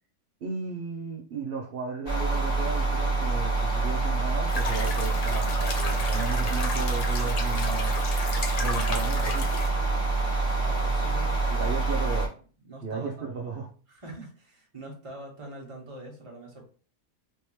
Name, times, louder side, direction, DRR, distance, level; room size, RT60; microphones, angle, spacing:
voice 1, 0.4-7.9 8.6-9.5 11.5-12.3 12.8-13.7, right 5 dB, 60° right, 0 dB, 0.6 m, -35 dB
sound 1, 2.1-12.3, right 3 dB, 40° left, 1.7 m, -26 dB
sound 2, 4.5-9.7, left 2 dB, 70° left, 0.3 m, -34 dB
voice 2, 10.5-11.8 12.2-12.4 12.7-13.1 13.9-16.7, right 2 dB, 25° right, -1 dB, 1.1 m, -43 dB
3.5 x 3.3 x 3.0 m, 0.39 s
omnidirectional pair, 1.5 m